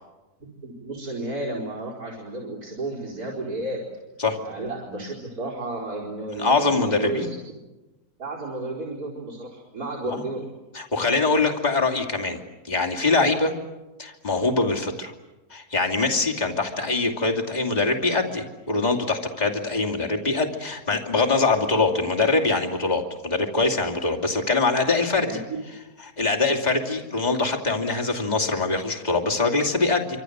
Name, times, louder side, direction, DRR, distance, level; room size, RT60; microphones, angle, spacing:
voice 1, 0.6-3.8 4.4-7.4 8.2-10.5 25.3-25.4, right 2 dB, 85° right, -3 dB, 5.0 m, -32 dB
voice 2, 6.4-7.3 10.1-10.2 10.7-12.4 12.6-13.5 14.0-15.1 15.5-25.3 26.2-30.2, left 3 dB, 25° left, 2 dB, 2.8 m, -23 dB
27.5 x 26.0 x 8.1 m, 1.1 s
omnidirectional pair, 1.6 m